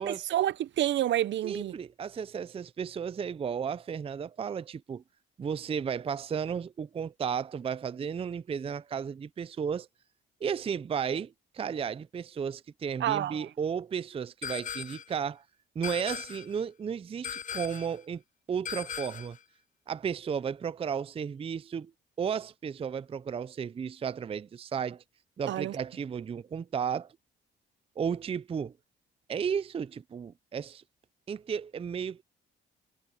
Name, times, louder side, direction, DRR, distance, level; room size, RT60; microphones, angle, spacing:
voice 1, 0.0-1.7 13.0-13.5 25.5-25.8, right 12 dB, 65° right, 0.7 m, -29 dB
voice 2, 1.4-5.0 5.4-9.9 10.4-15.4 15.8-18.2 18.5-19.4 19.9-21.9 22.2-25.0 25.4-27.1 28.0-28.7 29.3-30.8 31.3-32.2, right 7 dB, 30° right, 0.4 m, -34 dB
sound 1, 14.4-15.2 15.8-16.6 17.2-18.0 18.6-19.4, left 8 dB, 40° left, 0.5 m, -38 dB
cardioid pair, 90°, 20 cm